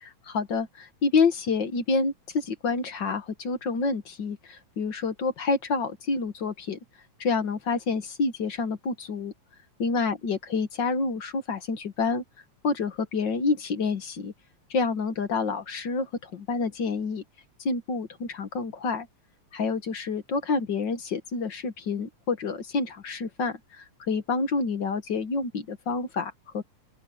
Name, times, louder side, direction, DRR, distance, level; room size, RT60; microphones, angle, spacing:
voice 1, 0.0-6.8 7.2-9.3 9.8-12.2 12.6-14.3 14.7-17.2 17.6-19.1 19.5-26.6, left 4 dB, 45° left, 1.8 m, -28 dB
open air
omnidirectional pair, 3.3 m